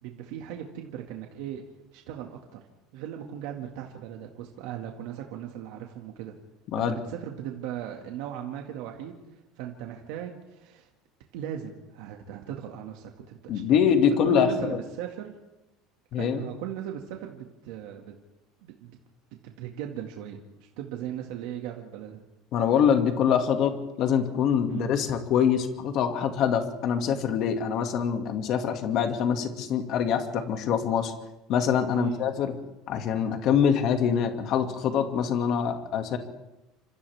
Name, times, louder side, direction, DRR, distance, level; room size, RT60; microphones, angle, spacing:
voice 1, 0.0-1.6 1.9-2.6 2.9-6.3 6.8-10.9 11.3-13.8 14.2-15.3 16.2-18.1 18.6-18.9 19.4-22.2 24.7-24.9 31.9-32.3, right 10 dB, 70° right, 2 dB, 2.1 m, -38 dB
voice 2, 13.5-14.8 16.1-16.4 22.5-31.1 31.5-32.5 32.9-36.2, left 8 dB, 40° left, 5 dB, 2.2 m, -24 dB
30.0 x 26.5 x 3.6 m, 0.98 s
cardioid pair, 175°, 0 cm